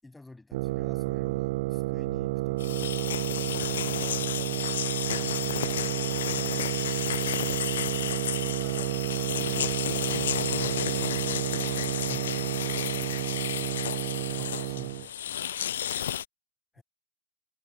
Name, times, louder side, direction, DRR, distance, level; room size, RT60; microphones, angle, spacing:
voice 1, 0.0-3.4 5.1-5.8 6.2-6.9 10.6-10.8 12.1-12.3 14.4-15.4 16.7-16.8, left 2 dB, 5° left, 6.1 m, -50 dB
sound 1, 0.5-15.1, right 20 dB, 50° right, 0.5 m, -31 dB
sound 2, 2.6-16.3, left 10 dB, 60° left, 0.3 m, -32 dB
voice 2, 3.8-4.7 5.3-5.5 7.8-10.7 12.0-13.7 16.8-16.9, left 40 dB or more, 45° left, 5.6 m, -53 dB
figure-of-eight pair, 90°, 0 cm